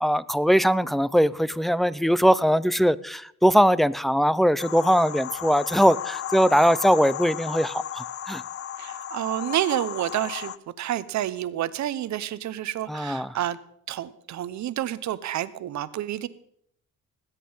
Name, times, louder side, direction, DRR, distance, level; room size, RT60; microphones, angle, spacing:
voice 1, 0.0-8.4 12.9-13.3, equal, ahead, 19 dB, 0.4 m, -21 dB
sound 1, 4.6-10.6, left 10 dB, 50° left, 0.6 m, -35 dB
voice 2, 8.8-13.6 13.9-16.3, right 12 dB, 70° right, 16 dB, 0.9 m, -29 dB
19.0 x 8.4 x 5.5 m, 0.71 s
cardioid pair, 90°, 30 cm